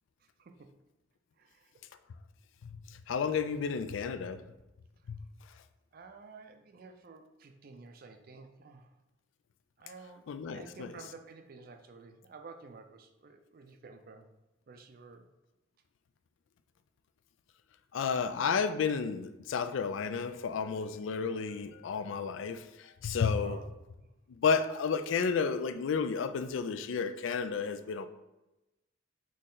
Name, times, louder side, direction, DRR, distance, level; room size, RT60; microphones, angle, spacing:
voice 1, 0.2-0.7 1.4-1.7 3.6-3.9 5.9-8.9 9.8-10.2 10.5-14.3 14.7-15.3 23.4-23.7 23.9-24.1, right 4 dB, 50° right, 6 dB, 0.4 m, -52 dB
voice 2, 2.6-4.4 5.1-5.2 10.3-10.9 17.9-23.6 24.3-28.1, left 5 dB, 80° left, 11 dB, 0.3 m, -32 dB
4.2 x 3.1 x 3.8 m, 0.98 s
head